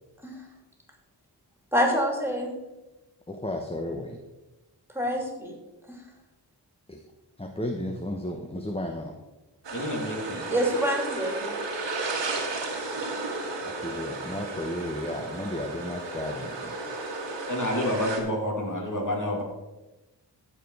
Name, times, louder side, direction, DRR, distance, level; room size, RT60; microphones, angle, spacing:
voice 1, 1.7-2.5 4.9-5.5 5.9-6.0 10.5-11.5, equal, 5° right, 0 dB, 3.0 m, -26 dB
voice 2, 3.3-4.2 6.9-7.0 7.4-9.1 13.6-16.7, left 1 dB, 15° left, 3 dB, 0.9 m, -33 dB
sound 1, 9.6-18.2, right 3 dB, 85° right, 1.8 m, -33 dB
voice 3, 9.7-10.4 17.5-19.4, left 1 dB, 45° left, -1 dB, 2.7 m, -29 dB
14.5 x 5.1 x 4.7 m, 1.1 s
wide cardioid pair, 60°, 43 cm